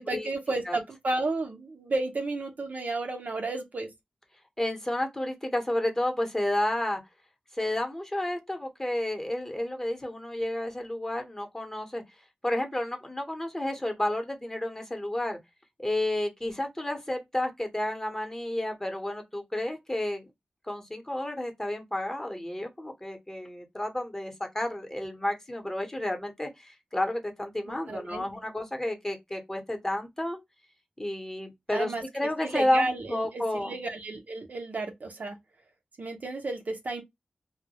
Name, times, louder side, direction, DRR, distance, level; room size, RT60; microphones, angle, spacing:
voice 1, 0.0-3.9 27.7-28.3 31.7-32.0 32.4-35.4 36.0-37.0, right 2 dB, 60° right, 0.6 m, -32 dB
voice 2, 4.6-7.0 7.6-12.0 12.4-15.4 15.8-20.2 20.7-30.4 31.0-33.8, left 1 dB, 15° left, 0.8 m, -31 dB
2.2 x 2.0 x 2.8 m
cardioid pair, 55°, 3 cm